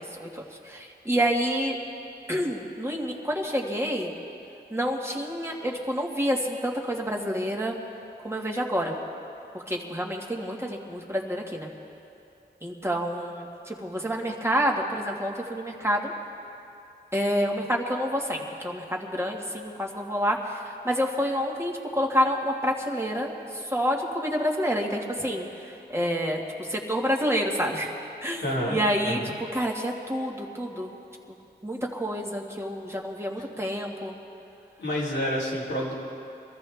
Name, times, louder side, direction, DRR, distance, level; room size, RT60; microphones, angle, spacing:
voice 1, 0.0-1.8 2.3-4.1 4.7-7.8 8.2-9.0 9.5-11.7 12.6-16.1 17.1-27.9 28.2-30.9 31.6-34.1, equal, 15° right, -1 dB, 1.9 m, -28 dB
voice 2, 28.4-28.8 29.0-29.3 34.8-35.9, equal, 85° left, -7 dB, 3.5 m, -28 dB
23.5 x 13.5 x 3.5 m, 2.8 s
cardioid pair, 45°, 18 cm